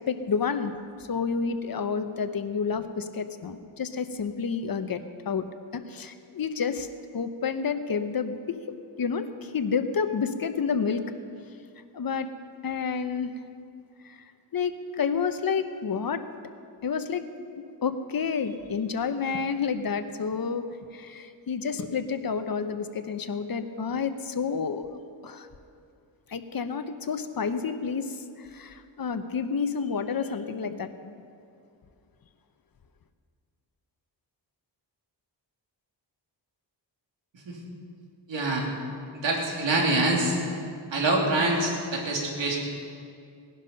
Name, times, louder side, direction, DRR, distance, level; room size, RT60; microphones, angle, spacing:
voice 1, 0.1-0.8 1.1-5.5 5.7-6.9 7.1-8.6 9.0-11.0 11.9-12.3 12.6-13.3 14.0-14.2 14.5-16.2 16.8-17.2 17.8-20.6 20.9-25.0 25.2-25.5 26.3-31.2, left 6 dB, 50° left, 9 dB, 1.0 m, -29 dB
voice 2, 38.3-38.7 39.1-40.4 40.9-42.6, right 2 dB, 70° right, -1 dB, 3.1 m, -25 dB
18.0 x 11.5 x 5.4 m, 2.4 s
wide cardioid pair, 100°, 46 cm